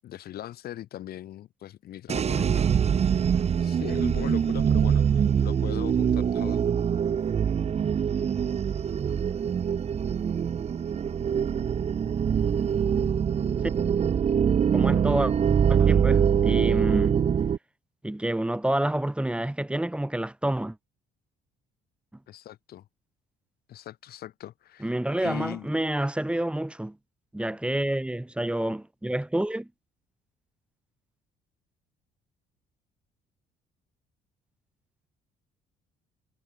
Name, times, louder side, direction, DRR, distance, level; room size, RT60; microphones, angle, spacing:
voice 1, 0.0-2.7 3.0-3.3 3.6-6.6 22.3-22.9 23.7-24.9 25.2-25.7, left 12 dB, 65° left, 7.8 m, -40 dB
sound 1, 2.1-17.6, right 7 dB, 40° right, 1.5 m, -24 dB
voice 2, 14.7-15.3 15.7-17.2 18.0-20.8 24.8-27.0 27.3-29.7, right 1 dB, 5° right, 5.5 m, -28 dB
cardioid pair, 110°, 17 cm